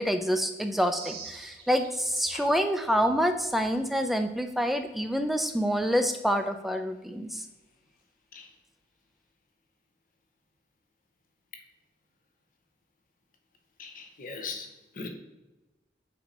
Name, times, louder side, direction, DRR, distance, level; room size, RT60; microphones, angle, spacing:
voice 1, 0.0-7.5, equal, ahead, 7 dB, 0.4 m, -27 dB
sound 1, 0.9-2.5 2.8-4.4 4.7-4.8 5.1-5.3 5.6-5.9, right 5 dB, 60° right, 0.9 m, -46 dB
voice 2, 13.8-15.1, left 4 dB, 50° left, 5 dB, 0.7 m, -40 dB
4.4 x 4.1 x 5.1 m, 1.1 s
head